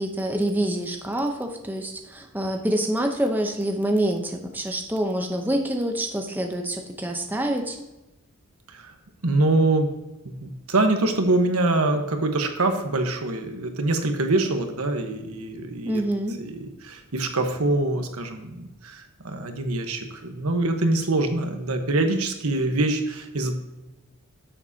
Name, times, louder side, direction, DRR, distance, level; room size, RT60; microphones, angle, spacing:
voice 1, 0.0-7.8 15.8-16.4, right 1 dB, 10° right, 3 dB, 0.7 m, -26 dB
voice 2, 9.2-9.9 10.2-16.0 16.4-23.5, right 2 dB, 90° right, 5 dB, 1.2 m, -24 dB
10.5 x 7.4 x 2.8 m, 1.0 s
head